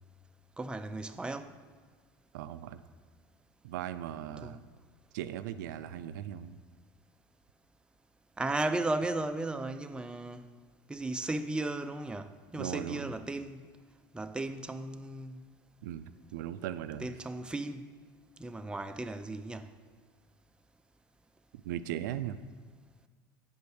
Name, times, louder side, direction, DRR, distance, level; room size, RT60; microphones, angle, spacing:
voice 1, 0.6-1.6 4.4-4.6 8.4-10.5 10.9-13.6 14.1-15.4 17.0-17.9 18.4-19.7, right 2 dB, 10° right, 0.4 m, -35 dB
voice 2, 2.3-2.8 3.6-4.6 5.1-6.6 12.6-13.1 15.8-17.1 21.5-22.4, right 11 dB, 80° right, 0.4 m, -38 dB
8.6 x 5.2 x 6.3 m
hypercardioid pair, 85°, 10 cm